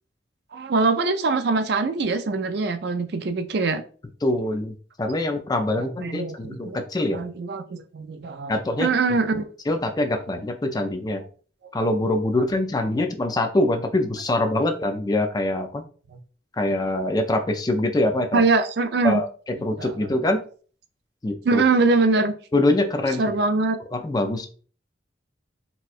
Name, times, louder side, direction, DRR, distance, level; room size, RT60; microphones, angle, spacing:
voice 1, 0.5-3.8 5.8-6.8 7.1-9.5 13.0-13.1 18.3-19.2 19.8-20.1 21.4-22.3 23.2-23.8, right 3 dB, 55° right, 8 dB, 0.4 m, -23 dB
voice 2, 4.2-7.2 8.5-9.2 9.7-11.2 11.7-15.8 16.6-18.4 19.0-19.3 19.6-20.4 21.2-21.6 22.5-23.4 23.9-24.5, left 1 dB, 20° left, 5 dB, 0.3 m, -24 dB
4.2 x 2.2 x 2.4 m, 0.41 s
head